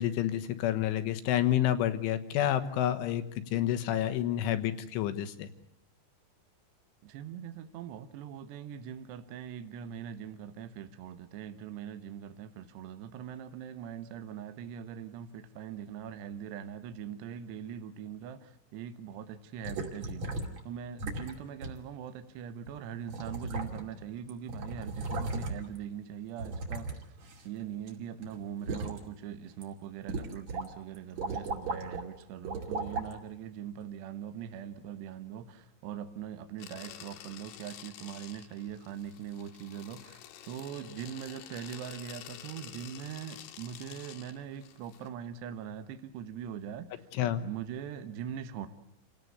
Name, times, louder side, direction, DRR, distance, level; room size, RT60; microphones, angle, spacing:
voice 1, 0.0-3.2 3.5-5.5 47.2-47.4, left 11 dB, 85° left, 3.8 m, -29 dB
voice 2, 7.0-20.3 20.6-27.2 27.4-47.1 47.4-48.7, right 9 dB, 70° right, 3.3 m, -42 dB
sound 1, 19.6-20.6 21.0-21.3 21.6-21.8 22.7-22.8 23.1-24.0 24.3-25.8 26.4-27.9 28.2-29.0 29.5-29.6 30.1-30.7 30.9-32.0 32.4-33.1 33.8-33.9, right 2 dB, 40° right, 3.4 m, -36 dB
sound 2, 36.6-45.1, left 11 dB, 65° left, 3.1 m, -49 dB
28.5 x 17.5 x 8.2 m
omnidirectional pair, 5.5 m